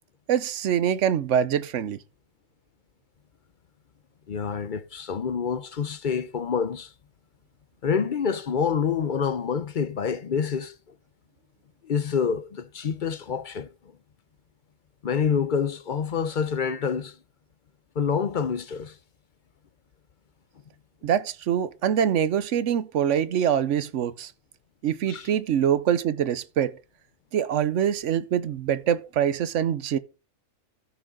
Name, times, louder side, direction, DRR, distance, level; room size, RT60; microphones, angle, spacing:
voice 1, 0.3-2.0 21.0-24.3 24.8-26.8 27.3-30.0, right 9 dB, 65° right, 1.0 m, -24 dB
voice 2, 4.3-6.9 7.8-10.7 11.8-13.7 15.0-17.1 18.0-19.0 25.1-25.3, left 6 dB, 50° left, 0.6 m, -27 dB
14.0 x 6.4 x 3.7 m
omnidirectional pair, 1.4 m